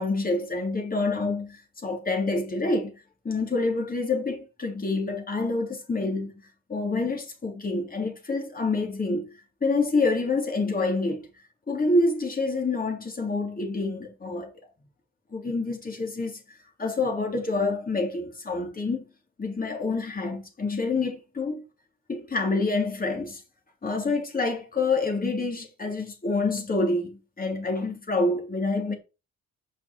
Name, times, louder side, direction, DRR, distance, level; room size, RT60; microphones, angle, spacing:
voice 1, 0.0-2.9 3.2-6.4 6.7-9.3 9.6-11.3 11.7-14.5 15.3-16.4 16.8-19.1 19.4-21.6 22.1-23.4 23.8-28.9, left 3 dB, 30° left, 3.6 m, -27 dB
6.6 x 6.1 x 7.1 m
cardioid pair, 90°, 30 cm